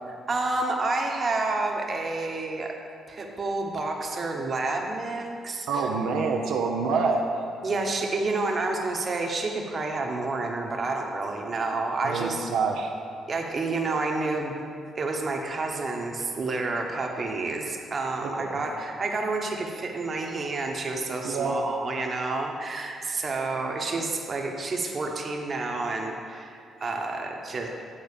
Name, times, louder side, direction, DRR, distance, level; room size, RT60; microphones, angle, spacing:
voice 1, 0.3-2.7 3.1-5.9 7.6-12.5 13.3-14.5 14.9-27.7, right 3 dB, 40° right, 1 dB, 1.1 m, -29 dB
voice 2, 5.7-7.4 12.0-12.9 18.2-18.6 21.2-21.6, right 4 dB, 85° right, 1 dB, 0.6 m, -27 dB
8.8 x 3.8 x 6.7 m, 2.4 s
cardioid pair, 90°, 0 cm